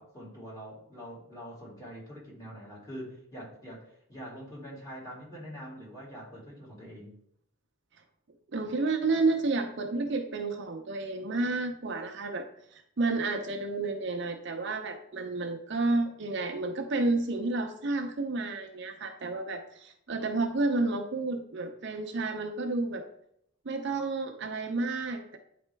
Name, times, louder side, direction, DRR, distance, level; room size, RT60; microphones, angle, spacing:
voice 1, 0.0-7.1, equal, 15° left, -5 dB, 2.5 m, -44 dB
voice 2, 8.5-12.5 12.7-23.0 23.7-25.4, right 3 dB, 55° right, 5 dB, 0.6 m, -31 dB
9.0 x 4.2 x 3.4 m, 0.71 s
head